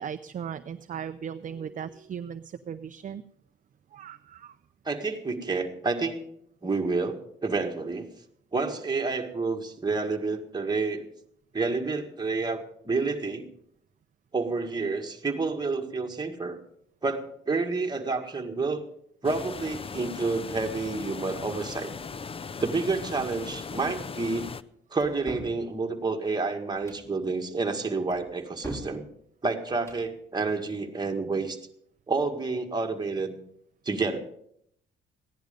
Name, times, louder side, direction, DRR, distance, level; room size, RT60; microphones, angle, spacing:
voice 1, 0.0-3.2 3.9-4.6, right 8 dB, 40° right, 10 dB, 0.6 m, -37 dB
voice 2, 4.9-6.2 6.6-8.1 8.5-11.1 11.5-13.5 14.3-16.6 17.0-18.8 19.2-21.9 22.6-24.5 24.9-29.0 29.4-31.6 32.1-33.4 33.9-34.2, right 3 dB, 20° right, 3 dB, 1.8 m, -29 dB
sound 1, 19.2-24.6, left 5 dB, 30° left, 0.5 m, -38 dB
sound 2, 25.0-25.6 26.7-27.1 28.1-29.0 29.7-30.1, right 1 dB, 15° left, 4.5 m, -39 dB
15.5 x 10.5 x 5.2 m, 0.71 s
cardioid pair, 90°, 20 cm